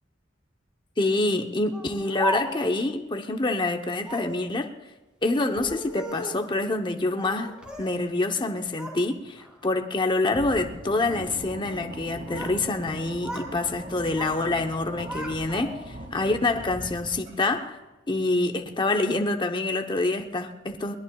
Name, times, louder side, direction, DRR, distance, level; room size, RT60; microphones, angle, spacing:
voice 1, 1.0-4.7 5.2-15.7 16.1-17.8 18.1-20.9, left 2 dB, 25° left, 5 dB, 0.9 m, -26 dB
Speech, 1.7-2.8 4.0-4.4 5.4-6.5 7.2-8.0 8.3-9.0 9.4-9.8 10.4-10.8 11.9-12.6 12.9-13.5 13.8-14.4 14.7-16.0, equal, 5° right, 2.6 m, -36 dB
sound 1, 10.3-17.6, equal, 60° right, 2.2 m, -41 dB
22.0 x 20.0 x 2.3 m, 1.1 s
head